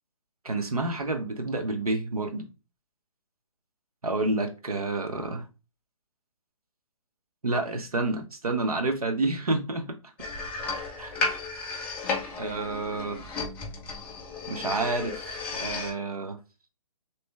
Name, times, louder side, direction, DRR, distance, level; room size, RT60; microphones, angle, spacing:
voice 1, 0.4-2.4 4.0-5.4 7.4-10.0 11.0-11.2 12.4-13.2 14.5-15.2 15.5-16.4, right 2 dB, 90° right, 1.0 m, -29 dB
sound 1, 10.2-15.9, left 3 dB, 10° left, 0.3 m, -33 dB
3.2 x 3.1 x 3.1 m
hypercardioid pair, 145°, 18 cm